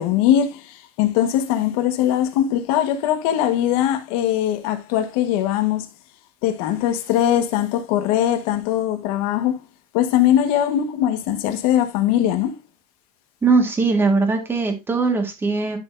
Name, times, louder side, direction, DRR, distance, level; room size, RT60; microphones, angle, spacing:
voice 1, 0.0-5.9 6.4-9.6 9.9-12.6, left 11 dB, 75° left, 1.5 m, -21 dB
voice 2, 13.4-15.8, right 4 dB, 10° right, 1.7 m, -20 dB
10.5 x 6.3 x 2.6 m
cardioid pair, 170°, 19 cm